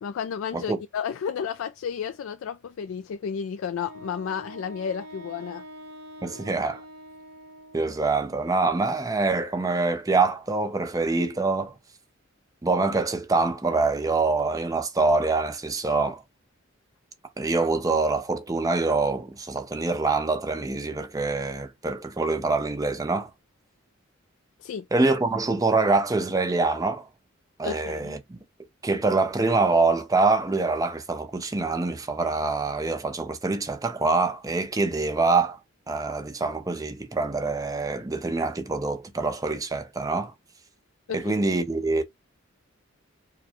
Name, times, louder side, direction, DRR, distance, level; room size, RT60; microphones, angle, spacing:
voice 1, 0.0-5.6 24.6-24.8 27.6-28.1 41.1-41.2, left 7 dB, 70° left, 0.3 m, -32 dB
Wind instrument woodwind instrument, 3.8-8.4, right 1 dB, 55° right, 1.0 m, -45 dB
voice 2, 6.2-6.8 7.7-11.8 12.6-16.2 17.4-23.3 24.9-27.1 27.6-28.4 28.8-35.6 35.9-40.3 41.1-42.0, right 3 dB, 15° right, 0.5 m, -25 dB
4.7 x 2.2 x 2.9 m
head